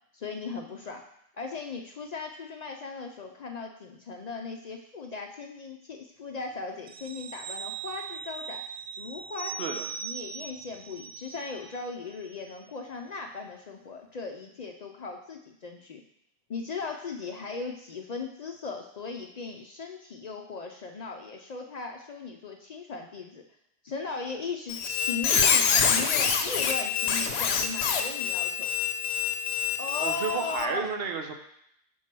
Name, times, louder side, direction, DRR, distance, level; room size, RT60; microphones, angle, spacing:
voice 1, 0.1-1.0 1.3-8.6 9.0-16.0 16.5-23.4 23.8-28.7 29.8-30.9, left 4 dB, 50° left, 3 dB, 0.5 m, -38 dB
sound 1, 6.9-12.0 12.3-12.5, right 5 dB, 50° right, 0.5 m, -40 dB
Squeak, 24.7-30.7, left 7 dB, 80° left, 0.8 m, -26 dB
voice 2, 30.0-31.3, right 5 dB, 70° right, 5 dB, 1.0 m, -31 dB
4.5 x 4.5 x 5.9 m, 0.74 s
omnidirectional pair, 1.1 m